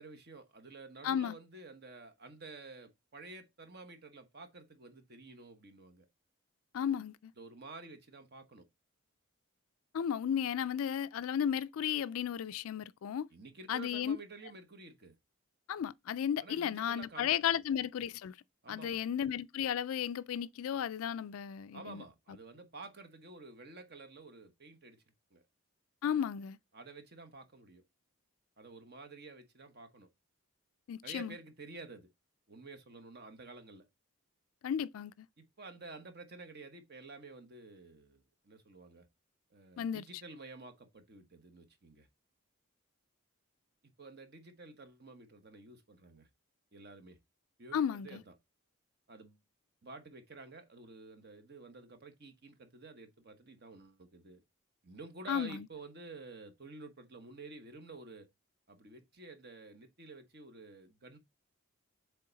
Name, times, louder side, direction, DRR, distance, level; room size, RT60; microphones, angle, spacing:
voice 1, 0.0-6.1 7.4-8.7 13.3-15.1 16.4-17.3 18.6-19.0 21.7-25.0 25.3-25.4 26.7-27.8 28.6-30.1 31.0-32.1 32.5-33.8 35.4-39.1 39.5-42.1 44.0-46.3 46.7-47.2 47.6-48.3 49.1-49.4 49.8-54.4 54.8-58.3 58.7-61.2, right 3 dB, 45° right, 1.0 m, -51 dB
voice 2, 1.0-1.4 6.7-7.3 9.9-13.3 13.7-14.2 15.7-18.3 18.7-22.0 26.0-26.6 30.9-31.4 34.6-35.3 39.8-40.0 47.7-48.2 55.3-55.7, left 8 dB, 70° left, 0.3 m, -34 dB
7.5 x 3.5 x 3.9 m
head